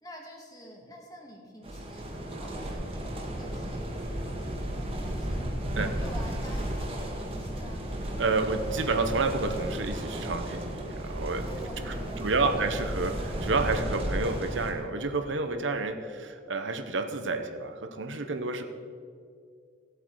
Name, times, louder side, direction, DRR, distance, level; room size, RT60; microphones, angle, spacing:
voice 1, 0.0-5.4 5.8-8.0 11.5-12.7, equal, 20° left, 0 dB, 1.8 m, -48 dB
sound 1, 1.6-14.7, right 1 dB, 30° right, 1.5 m, -34 dB
voice 2, 8.2-18.7, right 3 dB, 75° right, 7 dB, 0.8 m, -30 dB
16.5 x 8.2 x 4.6 m, 2.3 s
head